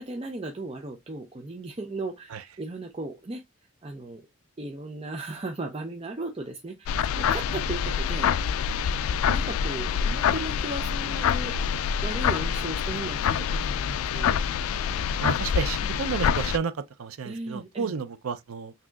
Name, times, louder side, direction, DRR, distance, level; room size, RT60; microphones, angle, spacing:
voice 1, 0.0-3.4 3.8-4.3 4.6-8.3 9.2-11.5 12.0-14.4 15.2-15.3 17.2-18.0, right 2 dB, 25° right, 0.5 m, -36 dB
sound 1, 6.9-16.6, left 7 dB, 90° left, 0.3 m, -26 dB
voice 2, 15.2-16.7 17.0-18.7, right 6 dB, 90° right, 0.5 m, -31 dB
6.1 x 2.7 x 2.3 m
head